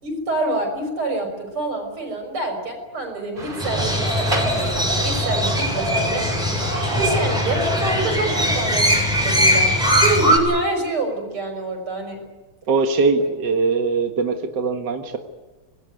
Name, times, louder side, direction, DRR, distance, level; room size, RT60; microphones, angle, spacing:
voice 1, 0.0-6.2 6.9-9.7 10.0-12.2 13.2-13.3, right 2 dB, 90° right, 4 dB, 6.8 m, -26 dB
sound 1, 3.4-8.7, right 1 dB, 25° right, 3.4 m, -32 dB
Crow, 3.6-10.4, equal, ahead, 7.8 m, -20 dB
voice 2, 12.7-15.2, right 4 dB, 55° right, 5 dB, 2.2 m, -21 dB
25.5 x 20.0 x 9.3 m, 1.2 s
omnidirectional pair, 2.3 m